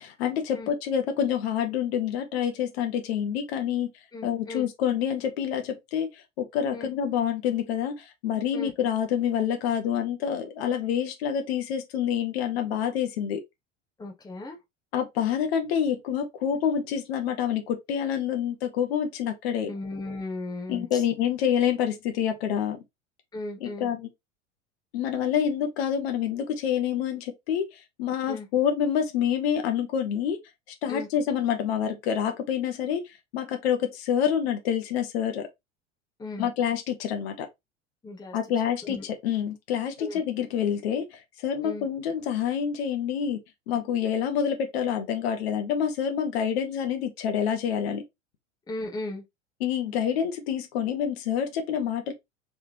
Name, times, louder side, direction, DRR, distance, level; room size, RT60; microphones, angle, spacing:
voice 1, 0.0-3.9 4.2-6.1 6.4-13.4 14.9-19.7 20.7-22.8 23.6-24.1 24.9-27.7 28.0-30.4 30.8-33.0 33.3-35.5 36.4-37.5 38.3-41.1 41.4-43.4 43.7-48.0 49.6-52.1, left 8 dB, 55° left, 1.2 m, -27 dB
voice 2, 4.1-4.7 6.7-6.9 8.5-8.7 14.0-14.6 19.7-21.0 23.3-23.9 28.3-28.5 30.9-31.1 36.2-36.5 38.0-38.4 38.8-39.0 40.0-40.2 41.6-41.9 48.7-49.2, left 2 dB, 10° left, 1.0 m, -36 dB
3.5 x 3.5 x 2.8 m
figure-of-eight pair, 80°, 37 cm